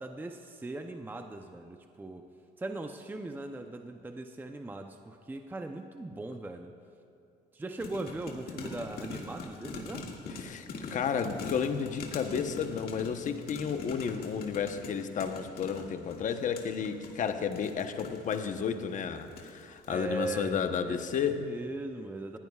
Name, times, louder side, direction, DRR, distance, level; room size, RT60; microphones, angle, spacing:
voice 1, 0.0-2.2 2.6-6.7 7.5-10.1 19.9-21.0 21.4-22.4, right 2 dB, 10° right, 5 dB, 0.6 m, -39 dB
sound 1, 7.8-18.6 19.2-19.6 19.8-19.9, left 4 dB, 65° left, 2.0 m, -42 dB
voice 2, 10.3-21.4, left 7 dB, 50° left, 7 dB, 0.9 m, -32 dB
20.0 x 15.5 x 2.4 m, 2.6 s
cardioid pair, 110°, 17 cm